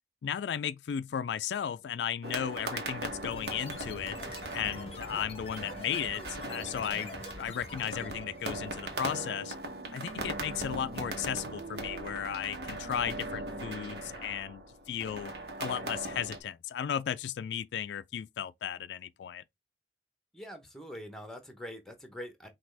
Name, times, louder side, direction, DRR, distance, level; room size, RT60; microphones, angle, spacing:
voice 1, 0.2-4.2 4.5-9.6 9.9-15.3 15.6-19.4, left 9 dB, 75° left, 0.3 m, -35 dB
sound 1, 2.2-16.4, right 2 dB, 65° right, 1.1 m, -40 dB
sound 2, 3.3-8.5, left 3 dB, 35° left, 0.7 m, -46 dB
sound 3, 9.4-14.2, right 3 dB, 90° right, 0.6 m, -48 dB
voice 2, 20.3-22.5, equal, 5° left, 0.9 m, -44 dB
6.0 x 2.4 x 3.2 m
head